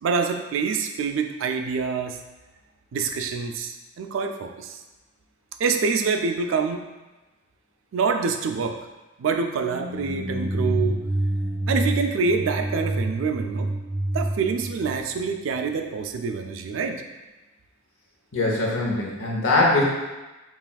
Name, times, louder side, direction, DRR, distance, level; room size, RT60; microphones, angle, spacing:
voice 1, 0.0-2.2 2.9-4.8 5.6-6.9 7.9-8.8 9.2-11.0 11.7-13.7 14.1-17.0, right 5 dB, 70° right, 5 dB, 0.3 m, -26 dB
sound 1, 9.6-15.6, right 1 dB, 10° right, 0.7 m, -28 dB
voice 2, 18.3-19.8, left 2 dB, 75° left, -2 dB, 0.8 m, -22 dB
5.6 x 2.5 x 2.3 m, 1.1 s
head